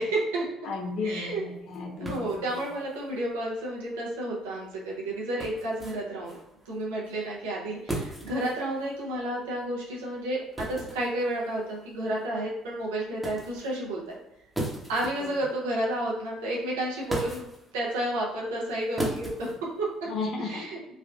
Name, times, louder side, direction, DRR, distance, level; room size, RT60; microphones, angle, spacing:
voice 1, 0.0-0.5 1.0-1.4 2.0-6.4 6.7-14.2 14.9-17.5 17.7-19.5 19.8-19.9 20.4-20.8, right 1 dB, 80° right, -4 dB, 0.7 m, -31 dB
voice 2, 0.6-2.4 20.1-20.6, left 3 dB, 60° left, -1 dB, 0.8 m, -33 dB
sound 1, 0.7-20.3, right 1 dB, 5° right, 1.0 m, -41 dB
3.4 x 2.3 x 2.4 m, 0.90 s
hypercardioid pair, 60°, 0 cm